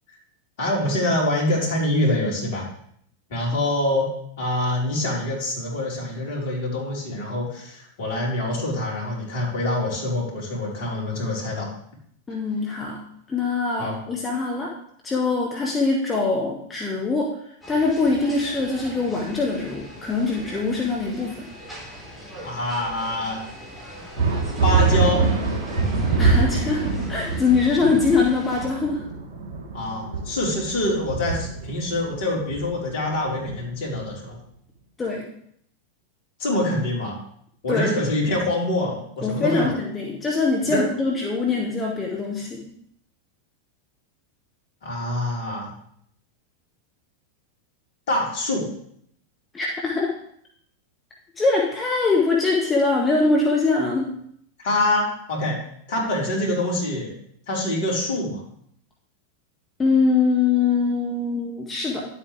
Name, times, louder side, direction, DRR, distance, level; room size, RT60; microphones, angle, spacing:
voice 1, 0.6-2.6 3.3-4.1 4.4-11.7 13.8-14.0 22.4-23.4 24.6-25.3 29.7-34.4 36.4-37.2 37.6-39.7 40.7-40.8 44.8-45.7 48.1-48.7 54.6-55.6 55.9-57.1 57.5-58.4, left 1 dB, 55° left, -2 dB, 4.5 m, -25 dB
voice 2, 12.3-13.0 13.3-14.7 15.0-17.3 17.7-21.4 26.2-26.8 27.1-29.0 35.0-35.2 37.7-37.9 39.2-42.6 49.5-50.1 51.4-54.1 59.8-62.0, left 4 dB, 15° left, -1 dB, 1.9 m, -23 dB
sound 1, 17.6-28.7, equal, 5° right, 4.7 m, -41 dB
sound 2, 24.2-34.1, right 4 dB, 45° right, 3.4 m, -24 dB
11.5 x 8.4 x 3.4 m, 0.67 s
figure-of-eight pair, 90°, 0 cm